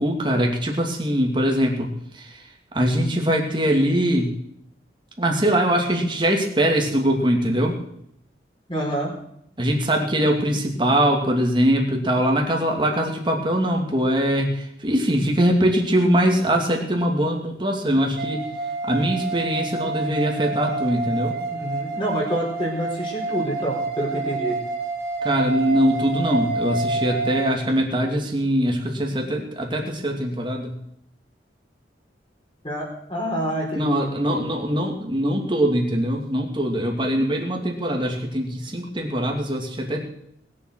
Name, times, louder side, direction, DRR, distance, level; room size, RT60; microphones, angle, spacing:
voice 1, 0.0-1.9 2.1-2.4 2.7-4.3 5.2-7.8 9.6-18.5 18.8-21.4 25.2-30.8 33.7-40.1, equal, 25° right, 1 dB, 2.4 m, -22 dB
voice 2, 8.7-9.1 21.5-24.6 32.6-34.4, equal, 25° left, -1 dB, 4.4 m, -27 dB
sound 1, 18.2-27.5, right 3 dB, 60° right, 2.1 m, -28 dB
20.0 x 7.6 x 6.4 m, 0.72 s
head